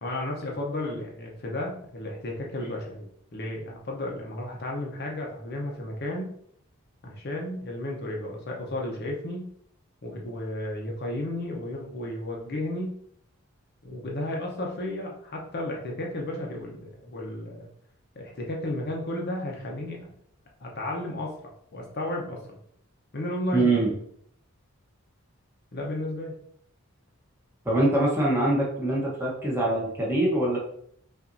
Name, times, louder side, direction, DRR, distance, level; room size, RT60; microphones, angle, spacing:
voice 1, 0.0-6.4 7.0-9.5 10.0-13.0 13.8-17.7 18.2-20.1 20.6-21.3 21.7-22.6 23.1-23.7 25.7-26.3, left 1 dB, 45° left, -1 dB, 0.7 m, -33 dB
voice 2, 23.5-23.9 27.6-30.6, right 2 dB, 10° right, -4 dB, 1.0 m, -23 dB
5.6 x 2.6 x 2.6 m, 0.66 s
head